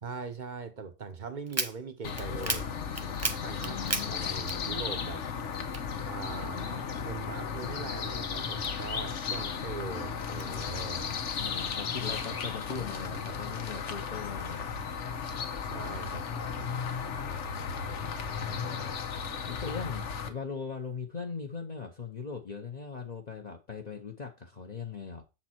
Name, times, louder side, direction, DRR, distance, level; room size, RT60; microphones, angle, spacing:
voice 1, 0.0-2.7 3.4-3.8 4.0-5.2 6.0-11.1 15.6-16.4, right 5 dB, 45° right, 1.0 m, -41 dB
sound 1, 1.5-5.1 5.4-6.7 7.1-9.2 9.7-10.5, right 3 dB, 25° right, 0.4 m, -36 dB
sound 2, 2.0-20.3, left 6 dB, 80° left, 1.2 m, -35 dB
voice 2, 3.6-4.2 11.4-14.7 18.3-18.7 19.4-25.2, left 5 dB, 40° left, 0.9 m, -40 dB
7.3 x 4.4 x 4.3 m
omnidirectional pair, 1.2 m